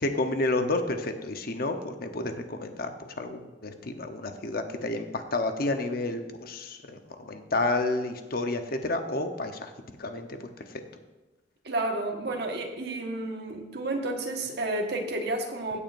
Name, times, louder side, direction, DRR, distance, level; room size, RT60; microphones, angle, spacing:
voice 1, 0.0-9.7 10.0-10.8, left 2 dB, 55° left, 6 dB, 0.9 m, -30 dB
voice 2, 11.6-15.8, right 2 dB, 65° right, 2 dB, 1.5 m, -31 dB
16.0 x 8.5 x 2.6 m, 1.2 s
head